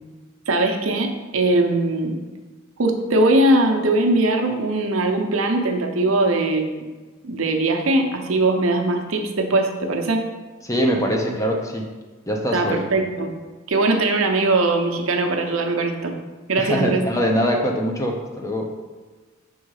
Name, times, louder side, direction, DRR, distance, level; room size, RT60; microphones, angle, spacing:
voice 1, 0.5-2.2 2.8-6.9 7.2-10.2 12.5-13.3 13.7-16.2 16.5-17.1, right 2 dB, 85° right, 4 dB, 0.8 m, -20 dB
voice 2, 10.6-11.9 12.3-12.8 16.6-18.7, equal, 15° left, 1 dB, 0.7 m, -23 dB
6.3 x 3.8 x 4.8 m, 1.3 s
head